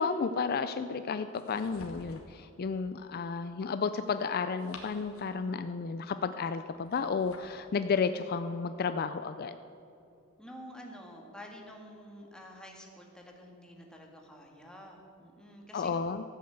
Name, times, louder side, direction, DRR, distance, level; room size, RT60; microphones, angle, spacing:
voice 1, 0.0-9.6 15.7-16.2, left 5 dB, 45° left, 10 dB, 0.4 m, -32 dB
sound 1, 1.3-2.4 4.3-5.5 6.7-7.6, left 3 dB, 90° left, 2.1 m, -51 dB
voice 2, 10.4-16.0, equal, 5° left, 0 dB, 1.9 m, -49 dB
14.0 x 8.6 x 7.9 m, 2.8 s
head